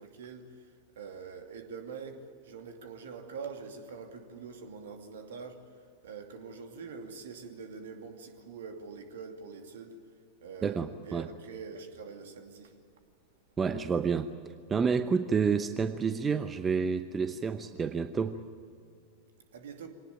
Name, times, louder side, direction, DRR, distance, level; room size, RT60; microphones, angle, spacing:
voice 1, 0.0-5.6 6.0-10.0 10.4-12.7 19.5-19.9, right 5 dB, 60° right, 2.6 m, -44 dB
voice 2, 10.6-11.3 13.6-14.3 14.7-18.4, right 5 dB, 20° right, 0.9 m, -29 dB
25.5 x 19.0 x 8.8 m
figure-of-eight pair, 90°, 0 cm